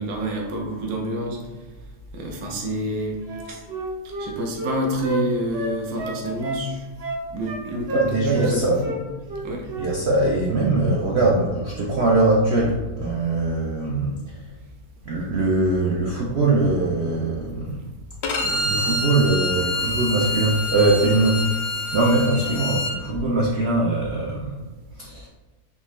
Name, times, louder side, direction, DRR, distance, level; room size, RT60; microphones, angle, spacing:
voice 1, 0.0-1.4 2.1-3.6 4.2-6.9 7.3-8.9 9.4-9.6, equal, 70° right, 0 dB, 1.2 m, -28 dB
Wind instrument woodwind instrument, 3.3-5.2 5.5-6.6 7.0-7.6 7.9-8.5 8.8-9.0 9.3-9.9 10.2-10.4, right 2 dB, 50° right, 0.7 m, -30 dB
voice 2, 7.9-8.8 9.8-14.4 15.0-17.8 18.4-21.5 21.9-24.6 24.9-25.3, right 2 dB, 90° right, -3 dB, 0.5 m, -22 dB
Bowed string instrument, 18.2-22.9, left 2 dB, 90° left, 1.2 m, -27 dB
3.6 x 3.1 x 3.1 m, 1.2 s
omnidirectional pair, 1.8 m